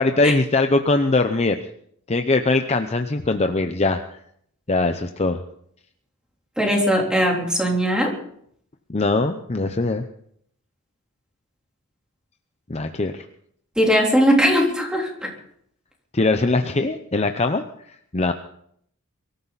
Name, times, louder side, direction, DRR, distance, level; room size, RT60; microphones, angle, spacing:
voice 1, 0.0-1.6 2.1-4.0 4.7-5.4 8.9-10.0 12.7-13.2 16.1-18.3, left 3 dB, 30° left, 7 dB, 0.8 m, -21 dB
voice 2, 6.6-8.1 13.8-15.3, equal, 5° right, -1 dB, 3.5 m, -19 dB
23.5 x 14.0 x 4.1 m, 0.67 s
head